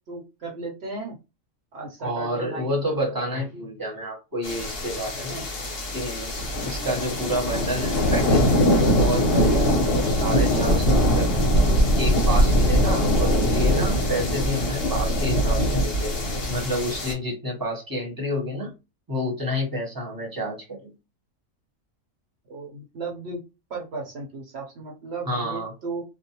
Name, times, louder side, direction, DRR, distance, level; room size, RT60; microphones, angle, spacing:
voice 1, 0.1-1.1 1.7-2.7 22.5-23.4 23.7-26.0, right 3 dB, 60° right, 0 dB, 0.9 m, -35 dB
voice 2, 2.0-5.4 5.9-6.3 6.6-8.5 8.8-11.5 12.0-16.2 16.5-18.7 19.1-20.9 25.2-25.7, equal, 20° right, -2 dB, 0.9 m, -29 dB
sound 1, 4.4-17.1, equal, 50° left, 0.9 m, -22 dB
2.5 x 2.0 x 2.8 m, 0.27 s
omnidirectional pair, 1.4 m